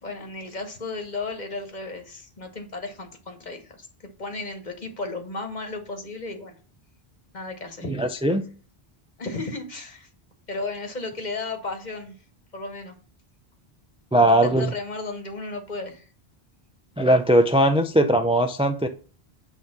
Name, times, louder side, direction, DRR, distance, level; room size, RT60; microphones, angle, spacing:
voice 1, 0.0-3.9 4.2-6.5 7.3-7.9 9.2-10.1 10.5-12.1 12.5-13.0 14.2-16.1, left 3 dB, 45° left, 1.4 m, -34 dB
voice 2, 7.9-8.4 14.1-14.7 17.0-18.9, right 1 dB, 10° right, 0.3 m, -19 dB
8.8 x 3.5 x 5.9 m
omnidirectional pair, 1.1 m